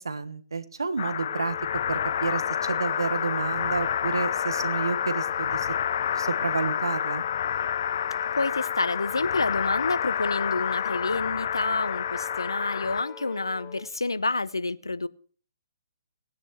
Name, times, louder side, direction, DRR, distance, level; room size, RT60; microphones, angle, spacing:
voice 1, 0.0-1.5 1.9-5.7 6.1-7.2, right 4 dB, 80° right, 1.1 m, -30 dB
sound 1, 1.0-13.0, left 9 dB, 55° left, 0.4 m, -29 dB
Wind instrument woodwind instrument, 1.2-13.9, left 10 dB, 25° left, 1.8 m, -41 dB
voice 2, 8.3-15.1, left 3 dB, 85° left, 0.7 m, -28 dB
18.5 x 9.9 x 3.0 m
figure-of-eight pair, 135°, 2 cm